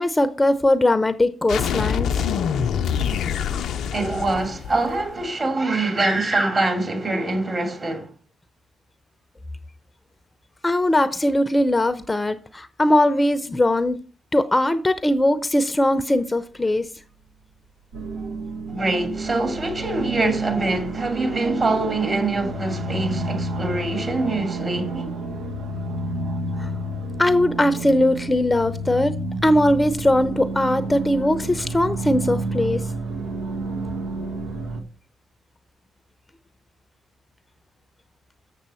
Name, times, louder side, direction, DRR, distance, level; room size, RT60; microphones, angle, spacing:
voice 1, 0.0-2.2 10.6-14.0 14.3-16.9 26.6-26.7 27.2-32.9, left 1 dB, 20° left, 0.7 m, -20 dB
sound 1, 1.5-5.2, left 8 dB, 70° left, 0.6 m, -25 dB
voice 2, 3.9-8.1 18.7-25.1, right 2 dB, 40° right, 2.6 m, -24 dB
sound 2, 17.9-34.8, right 2 dB, 75° right, 1.1 m, -30 dB
7.3 x 6.7 x 4.3 m
hypercardioid pair, 45°, 0 cm